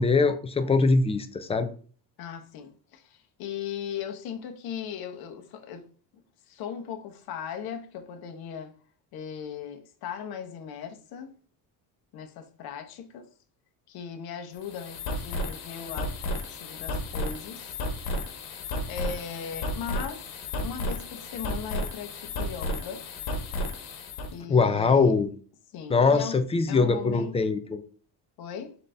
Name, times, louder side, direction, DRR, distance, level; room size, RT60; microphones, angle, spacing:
voice 1, 0.0-1.7 24.5-25.3 25.9-27.8, left 4 dB, 15° left, 0.3 m, -22 dB
voice 2, 2.2-5.9 6.5-8.7 9.1-11.3 12.1-13.3 13.9-17.8 18.9-20.2 20.6-23.0 24.3-25.1 25.7-26.4 26.7-27.4 28.4-28.7, left 8 dB, 65° left, 0.9 m, -38 dB
sound 1, 14.5-24.3, left 1 dB, 90° left, 1.3 m, -33 dB
4.0 x 3.8 x 3.3 m
cardioid pair, 145°, 40 cm